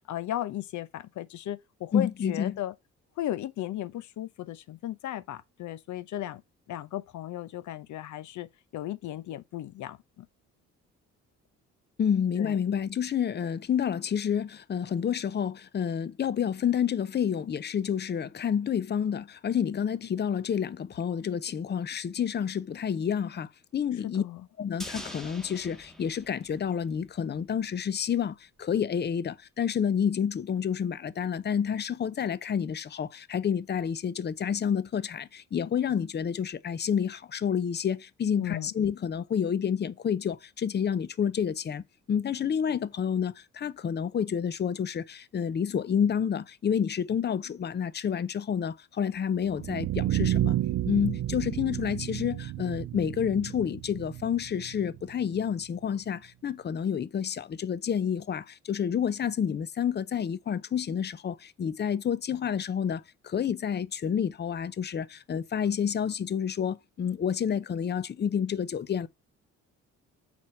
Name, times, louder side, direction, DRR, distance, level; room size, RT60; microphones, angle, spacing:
voice 1, 0.1-2.7 3.2-6.4 6.7-10.3 12.4-12.6 24.0-24.5 38.4-38.7, left 13 dB, 75° left, 0.8 m, -36 dB
voice 2, 1.9-2.6 12.0-24.2 24.6-50.6 50.8-69.1, left 8 dB, 35° left, 0.6 m, -29 dB
sound 1, 24.8-27.2 27.5-27.6, equal, ahead, 1.3 m, -44 dB
sound 2, 49.4-55.5, right 14 dB, 65° right, 0.5 m, -31 dB
6.0 x 4.4 x 5.7 m
cardioid pair, 90°, 30 cm